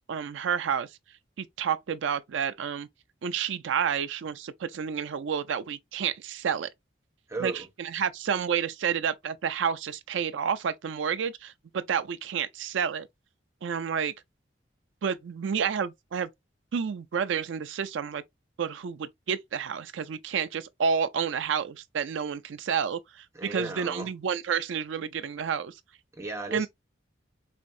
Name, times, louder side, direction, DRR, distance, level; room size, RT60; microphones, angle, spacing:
voice 1, 0.1-0.9 1.4-2.9 3.2-6.7 7.4-13.1 13.6-14.1 15.0-16.3 16.7-18.2 18.6-23.2 23.5-25.7 26.5-26.7, right 7 dB, 85° right, 0.4 m, -30 dB
voice 2, 7.3-7.7 23.3-24.1 26.1-26.7, right 2 dB, 15° right, 0.8 m, -35 dB
4.2 x 2.6 x 2.4 m
head